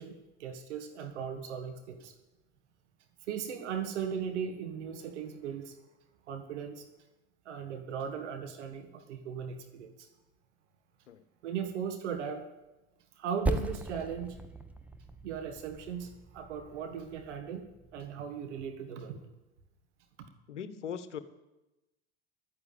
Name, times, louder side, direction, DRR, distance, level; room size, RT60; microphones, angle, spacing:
voice 1, 0.0-2.1 3.3-5.7 6.3-6.9 7.4-10.1 11.4-12.4 13.2-14.4 15.2-17.7 17.9-19.2, right 7 dB, 80° right, 7 dB, 1.6 m, -38 dB
Percussion, 13.5-18.3, right 1 dB, 5° right, 1.2 m, -38 dB
voice 2, 20.5-21.2, left 8 dB, 85° left, 13 dB, 1.0 m, -39 dB
12.0 x 9.7 x 8.5 m, 1.0 s
hypercardioid pair, 75°, 35 cm